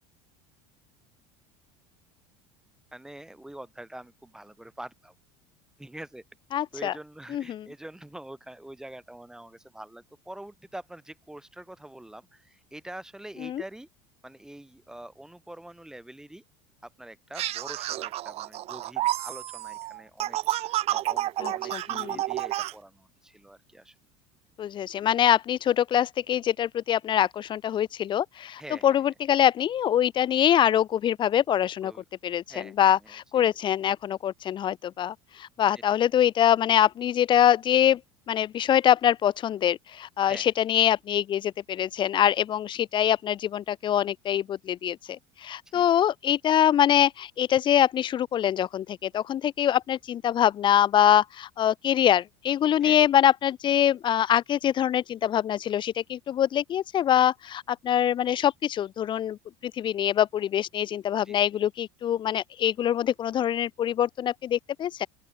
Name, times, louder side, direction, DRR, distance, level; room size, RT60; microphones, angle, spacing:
voice 1, 2.9-5.1 5.8-6.2 6.7-13.9 14.2-16.4 16.8-23.9 28.6-29.0 31.8-32.0 32.5-33.1 35.9-36.0 40.3-40.5 45.7-45.8 52.8-53.0 61.2-61.4, right 1 dB, 5° right, 4.5 m, -45 dB
voice 2, 6.5-6.9 7.3-7.7 13.4-13.6 21.4-22.2 24.6-31.9 32.2-38.0 38.3-59.4 59.6-65.1, left 10 dB, 35° left, 1.1 m, -24 dB
sound 1, 17.3-22.7, right 15 dB, 50° right, 1.9 m, -30 dB
open air
supercardioid pair, 125°, 13 cm